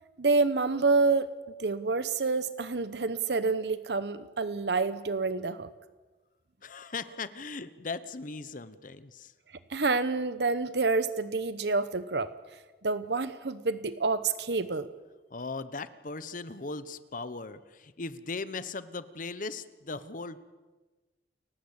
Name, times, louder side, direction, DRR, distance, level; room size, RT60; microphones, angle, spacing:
voice 1, 0.2-1.3 1.6-5.7 9.7-12.3 12.8-14.9, right 3 dB, 70° right, 13 dB, 0.9 m, -28 dB
voice 2, 6.6-9.3 15.3-20.4, left 3 dB, 50° left, 14 dB, 1.0 m, -38 dB
30.0 x 15.5 x 8.1 m, 1.2 s
head